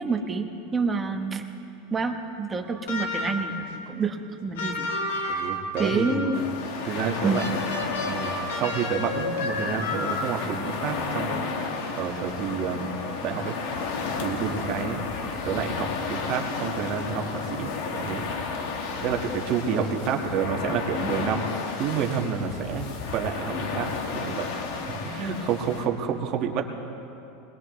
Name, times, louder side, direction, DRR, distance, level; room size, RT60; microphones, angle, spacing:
voice 1, 0.0-1.4 1.9-3.5 3.9-4.9 5.2-5.5 5.8-6.4 7.2-7.4, right 4 dB, 15° right, 4 dB, 1.1 m, -28 dB
sound 1, 2.9-3.6 4.6-6.4 7.3-10.5, left 2 dB, 90° left, 2.0 m, -31 dB
voice 2, 5.3-6.4 6.8-7.4 8.0-11.4 11.9-13.5 14.2-15.0 15.4-17.7 18.0-18.2 19.0-21.5 21.8-23.9 24.1-24.5 25.0-26.6, right 7 dB, 45° right, 2 dB, 1.5 m, -29 dB
sound 2, 6.3-25.9, left 4 dB, 65° left, 1.7 m, -32 dB
21.5 x 21.0 x 3.2 m, 2.8 s
supercardioid pair, 140°, 0 cm